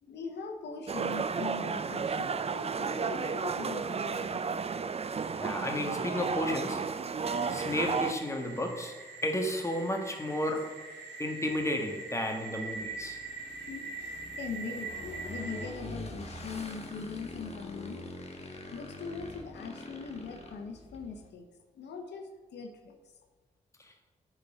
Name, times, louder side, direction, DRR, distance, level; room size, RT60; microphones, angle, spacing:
voice 1, 0.0-4.6 13.7-18.0 18.5-21.5 21.7-23.0, left 4 dB, 80° left, 4 dB, 0.9 m, -41 dB
sound 1, 0.9-8.1, right 5 dB, 35° right, 0.5 m, -33 dB
voice 2, 5.4-6.9 7.5-10.8 11.2-13.2, left 1 dB, 15° left, 3 dB, 1.4 m, -32 dB
sound 2, 7.2-15.7, right 4 dB, 75° right, 1.4 m, -43 dB
Motorcycle / Engine, 12.0-21.3, left 1 dB, 35° left, 1.3 m, -45 dB
9.4 x 4.1 x 5.1 m, 1.3 s
cardioid pair, 60°, 17 cm